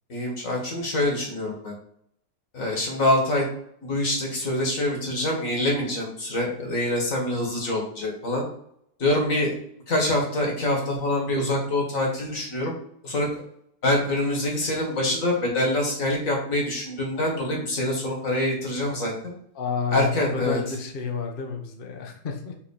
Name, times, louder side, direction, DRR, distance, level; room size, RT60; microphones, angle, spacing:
voice 1, 0.1-1.7 2.5-3.5 3.8-8.4 9.0-9.5 9.9-12.8 13.0-13.4 13.8-19.1 19.9-20.6, left 1 dB, 55° left, -1 dB, 2.1 m, -25 dB
voice 2, 19.5-22.5, left 6 dB, 40° left, 3 dB, 1.0 m, -30 dB
5.9 x 3.8 x 4.9 m, 0.69 s
omnidirectional pair, 1.8 m